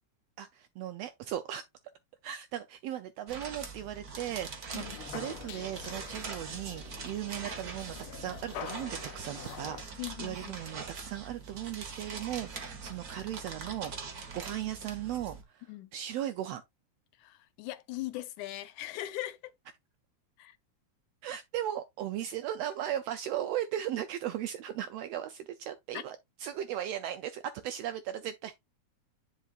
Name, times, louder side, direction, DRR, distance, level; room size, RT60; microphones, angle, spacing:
voice 1, 0.4-1.6 2.2-13.9 14.3-15.6 15.9-16.6 21.2-28.5, right 11 dB, 80° right, 1.4 m, -37 dB
sound 1, 3.3-15.4, right 5 dB, 45° right, 1.2 m, -43 dB
sound 2, 4.8-9.8, left 8 dB, 65° left, 1.5 m, -45 dB
voice 2, 10.0-10.8 15.7-15.9 17.2-19.5 20.4-20.6 25.9-26.0, left 15 dB, 90° left, 2.2 m, -40 dB
10.0 x 5.2 x 2.4 m
omnidirectional pair, 3.4 m